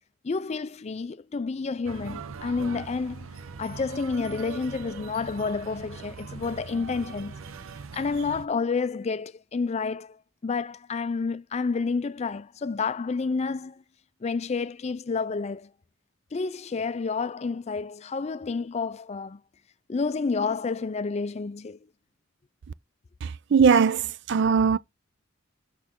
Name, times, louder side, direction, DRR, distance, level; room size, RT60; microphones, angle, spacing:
voice 1, 0.2-3.3 3.6-7.3 7.9-10.2 10.4-13.8 14.2-15.7 16.3-19.4 19.9-21.8, left 4 dB, 30° left, 0.4 m, -29 dB
sound 1, 1.8-8.5, right 5 dB, 75° right, 0.8 m, -41 dB
voice 2, 23.2-24.8, right 6 dB, 55° right, 0.4 m, -20 dB
6.6 x 6.4 x 3.6 m
head